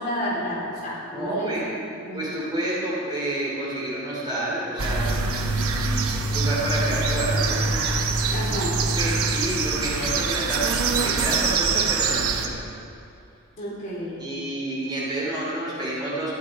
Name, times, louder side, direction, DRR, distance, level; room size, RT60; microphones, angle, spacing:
voice 1, 0.0-1.6 2.1-2.2 8.3-8.9 13.6-14.2, equal, 35° left, -6 dB, 3.9 m, -30 dB
voice 2, 1.1-1.7 2.1-7.6 8.8-12.6 14.2-16.4, right 1 dB, 20° right, -6 dB, 2.9 m, -29 dB
sound 1, 4.8-12.5, right 4 dB, 70° right, 1.0 m, -24 dB
14.5 x 11.5 x 4.8 m, 2.6 s
head